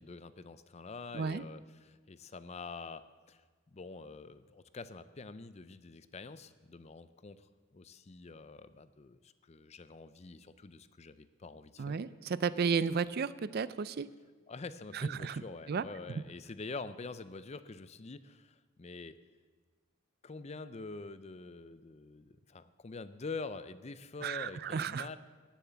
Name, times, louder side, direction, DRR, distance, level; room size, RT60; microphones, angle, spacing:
voice 1, 0.0-3.4 3.7-12.0 12.8-13.1 14.5-19.2 20.2-25.2, left 3 dB, 30° left, 13 dB, 0.5 m, -46 dB
voice 2, 11.8-14.1 14.9-15.4 15.7-15.8 24.2-25.1, right 6 dB, 50° right, 16 dB, 0.4 m, -33 dB
17.0 x 7.2 x 6.9 m, 1.4 s
head